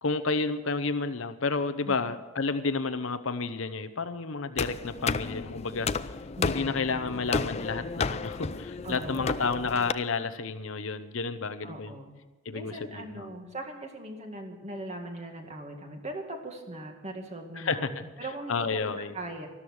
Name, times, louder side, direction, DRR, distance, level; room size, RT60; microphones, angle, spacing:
voice 1, 0.0-5.9 6.4-11.9 12.5-13.4 17.6-18.0 18.5-19.1, left 4 dB, 70° left, 11 dB, 0.8 m, -31 dB
sound 1, 4.6-9.9, left 4 dB, 30° left, 0.4 m, -32 dB
voice 2, 6.4-6.8 8.8-9.3 11.6-12.1 12.5-19.5, right 1 dB, 35° right, 3 dB, 2.1 m, -40 dB
13.0 x 12.5 x 6.5 m, 1.1 s
head